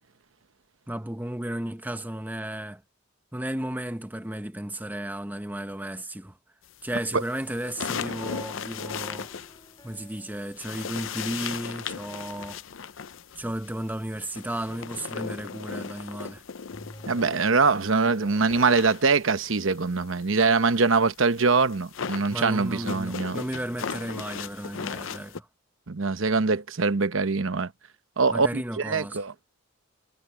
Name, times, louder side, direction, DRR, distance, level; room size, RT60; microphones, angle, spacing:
voice 1, 0.9-2.8 3.3-6.3 6.8-9.3 9.8-12.6 13.4-16.4 22.3-25.5 28.3-29.2, right 1 dB, 10° right, 0.9 m, -34 dB
sound 1, 6.9-10.2 10.5-17.8 18.1-25.4, left 6 dB, 65° left, 0.6 m, -37 dB
sound 2, 7.8-13.7 16.7-20.3, left 1 dB, 20° left, 3.7 m, -53 dB
voice 2, 17.1-23.4 25.9-27.7 28.2-29.3, right 4 dB, 65° right, 1.0 m, -23 dB
head